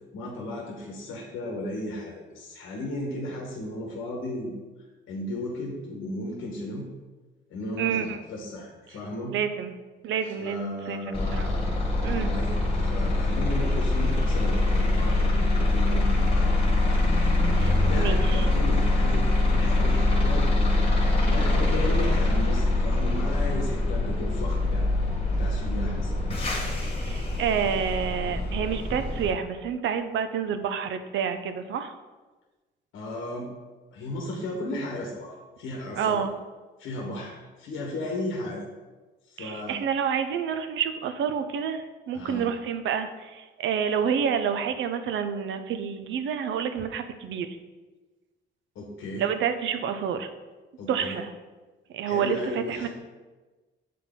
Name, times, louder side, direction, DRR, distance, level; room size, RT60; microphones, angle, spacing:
voice 1, 0.1-4.5 5.1-6.9 7.5-9.4 10.2-16.5 17.6-19.2 19.5-20.5 21.2-24.9 25.3-26.2 32.9-33.5 33.9-36.2 36.8-38.6 39.2-39.8 42.1-42.5 48.7-49.2 50.8-51.2 52.0-52.9, left 1 dB, 85° left, -1 dB, 1.1 m, -35 dB
voice 2, 7.8-8.2 9.3-9.7 10.0-11.0 11.3-11.5 12.0-12.3 17.6-18.5 27.0-32.0 36.0-36.3 39.4-47.5 49.2-50.3 50.9-51.3 51.9-52.9, right 7 dB, 70° right, 9 dB, 0.6 m, -28 dB
sound 1, 11.1-29.3, left 2 dB, 30° left, 1.4 m, -24 dB
7.5 x 3.9 x 3.7 m, 1.2 s
cardioid pair, 90°, 20 cm